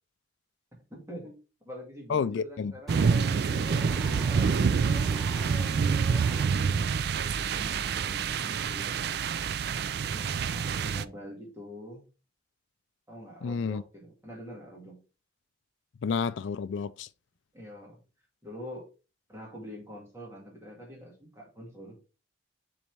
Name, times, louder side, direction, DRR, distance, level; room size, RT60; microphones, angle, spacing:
voice 1, 0.9-1.4 1.6-4.6 5.3-8.9 9.6-12.0 13.1-15.0 17.5-18.0 18.4-18.9 19.3-22.0, equal, 15° right, 2.2 m, -46 dB
voice 2, 2.1-2.7 13.4-13.8 16.0-17.1, left 5 dB, 75° left, 0.4 m, -30 dB
sound 1, 2.9-6.9, left 1 dB, ahead, 0.5 m, -44 dB
sound 2, 2.9-11.1, right 6 dB, 55° right, 0.3 m, -27 dB
7.1 x 4.2 x 3.4 m
head